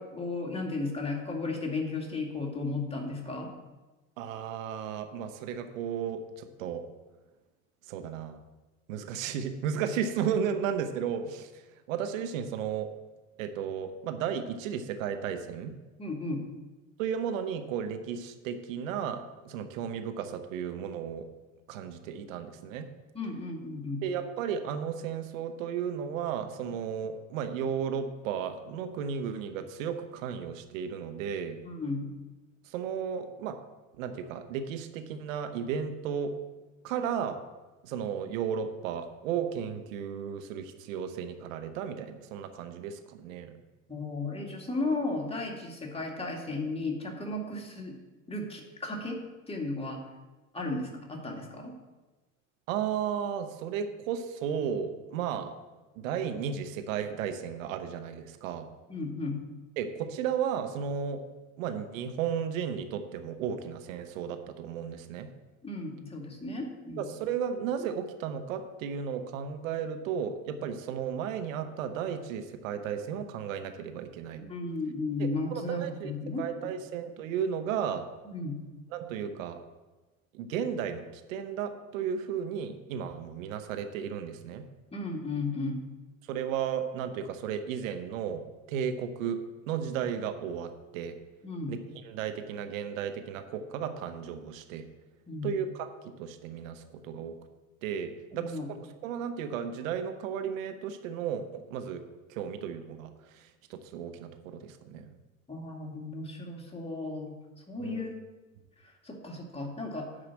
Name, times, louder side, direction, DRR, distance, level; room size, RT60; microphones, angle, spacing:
voice 1, 0.0-3.5 16.0-16.4 23.1-24.0 31.6-32.1 43.9-47.9 48.3-49.2 49.5-50.0 50.5-51.7 58.9-59.4 65.6-67.0 74.5-76.4 78.3-78.6 84.9-85.8 91.4-91.7 95.3-95.5 98.3-98.7 105.5-107.3 107.7-108.2 109.0-110.1, left 3 dB, 15° left, 0 dB, 2.3 m, -34 dB
voice 2, 4.2-6.8 7.9-8.4 8.9-11.5 11.9-12.9 13.4-15.7 17.0-21.2 21.7-22.9 24.0-31.6 32.7-33.6 34.0-36.3 36.8-37.4 37.8-43.6 52.7-55.5 56.0-58.7 59.8-61.2 61.6-65.3 67.0-74.4 75.2-76.1 76.4-78.1 78.9-79.6 80.3-84.6 86.3-88.4 88.7-91.1 91.7-94.9 95.4-95.9 96.2-97.3 97.8-102.0 102.3-105.1 107.8-108.1, right 8 dB, 70° right, 8 dB, 0.9 m, -34 dB
9.9 x 4.9 x 7.0 m, 1.2 s
hypercardioid pair, 70°, 41 cm